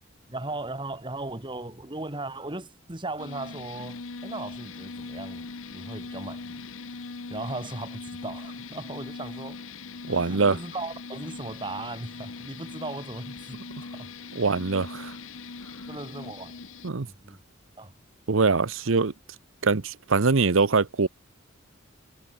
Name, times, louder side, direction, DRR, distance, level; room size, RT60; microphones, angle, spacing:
voice 1, 0.3-6.6 7.3-9.6 10.1-13.6 13.9-14.1 15.9-17.4 17.8-17.9, right 2 dB, 25° right, 2.5 m, -37 dB
sound 1, 3.2-16.9, left 4 dB, 80° left, 1.1 m, -40 dB
voice 2, 10.1-10.5 14.4-15.1 16.8-17.1 18.3-19.1 19.6-21.1, right 4 dB, 75° right, 0.9 m, -23 dB
head